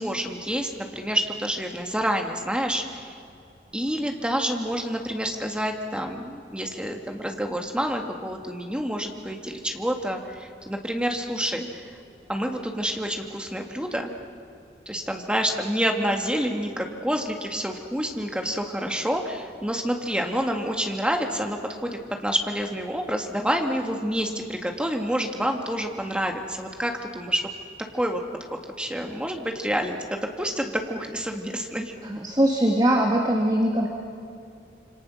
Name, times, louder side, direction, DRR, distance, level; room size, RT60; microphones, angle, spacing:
voice 1, 0.0-3.2 3.7-11.9 12.3-14.1 14.9-27.5 27.9-28.2 28.8-31.9, equal, 5° right, 3 dB, 1.9 m, -28 dB
voice 2, 32.0-33.9, right 1 dB, 25° right, 0 dB, 1.9 m, -21 dB
27.0 x 25.5 x 6.4 m, 2.5 s
head